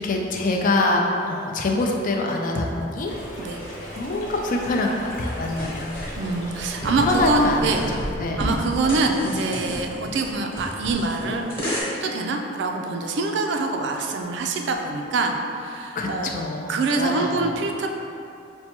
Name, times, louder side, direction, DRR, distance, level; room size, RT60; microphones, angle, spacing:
voice 1, 0.0-3.1 3.9-5.9 7.0-7.7 8.2-8.5 16.0-17.5, left 2 dB, 45° left, 1 dB, 0.4 m, -24 dB
sound 1, 3.0-8.1, left 1 dB, 75° left, 0.9 m, -37 dB
sound 2, 5.6-11.8, equal, 15° left, 1.0 m, -32 dB
voice 2, 6.2-7.8 8.4-11.4 11.9-16.3 16.7-17.9, right 3 dB, 65° right, 3 dB, 0.4 m, -25 dB
5.4 x 2.2 x 2.9 m, 2.6 s
head